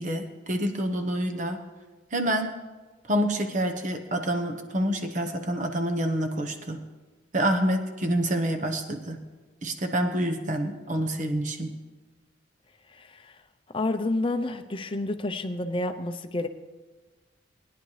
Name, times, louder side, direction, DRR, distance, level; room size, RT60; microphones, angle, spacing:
voice 1, 0.0-1.6 2.1-2.6 3.1-6.8 7.3-9.2 9.6-11.7, right 1 dB, 40° right, 4 dB, 1.0 m, -27 dB
voice 2, 12.9-13.4 13.7-16.5, left 2 dB, 25° left, 8 dB, 0.6 m, -29 dB
20.0 x 10.0 x 3.3 m, 1.3 s
head